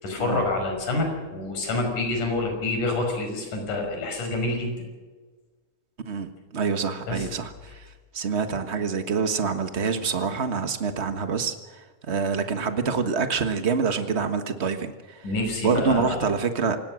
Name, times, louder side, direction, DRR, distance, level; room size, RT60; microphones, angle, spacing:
voice 1, 0.0-4.7 7.1-7.3 15.2-16.3, left 2 dB, 80° left, 3 dB, 7.1 m, -27 dB
voice 2, 6.1-15.2 15.6-16.8, right 5 dB, 55° right, 8 dB, 0.7 m, -26 dB
28.0 x 18.0 x 6.4 m, 1.4 s
omnidirectional pair, 3.6 m